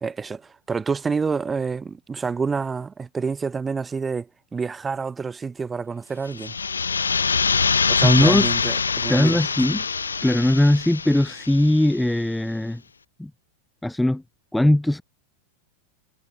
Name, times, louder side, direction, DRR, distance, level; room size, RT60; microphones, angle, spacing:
voice 1, 0.0-6.5 7.9-9.4, right 5 dB, 15° right, 1.1 m, -28 dB
sound 1, 6.3-11.9, left 5 dB, 75° left, 1.8 m, -24 dB
voice 2, 8.0-8.5 9.1-9.8 10.2-12.8 13.2-13.3 13.8-14.2 14.5-15.0, left 1 dB, 5° left, 0.3 m, -19 dB
figure-of-eight pair, 90°, 0 cm